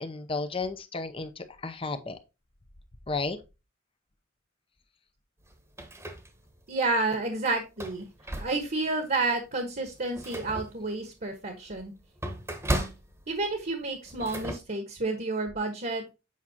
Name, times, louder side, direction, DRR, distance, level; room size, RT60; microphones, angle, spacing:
voice 1, 0.0-2.2 3.1-3.4, left 3 dB, 30° left, 10 dB, 0.7 m, -33 dB
sound 1, 5.4-6.7 7.1-7.2 7.7-8.9 9.4-9.5 9.9-14.5, right 1 dB, 15° right, 1.2 m, -36 dB
voice 2, 6.7-8.1 8.4-11.9 13.3-16.0, right 3 dB, 45° right, 5 dB, 1.4 m, -30 dB
8.4 x 5.5 x 2.9 m, 0.27 s
head